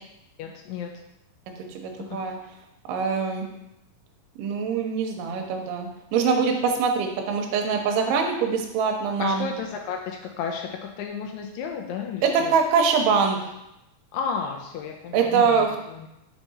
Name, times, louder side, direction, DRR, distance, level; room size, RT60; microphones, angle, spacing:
voice 1, 0.4-0.9 2.1-2.2 9.2-12.5 14.1-16.1, left 6 dB, 90° left, 2 dB, 1.6 m, -33 dB
voice 2, 1.7-2.4 2.9-3.5 4.4-9.5 12.2-13.4 15.1-15.7, right 5 dB, 80° right, 3 dB, 2.3 m, -23 dB
5.3 x 4.6 x 4.1 m, 0.86 s
omnidirectional pair, 4.1 m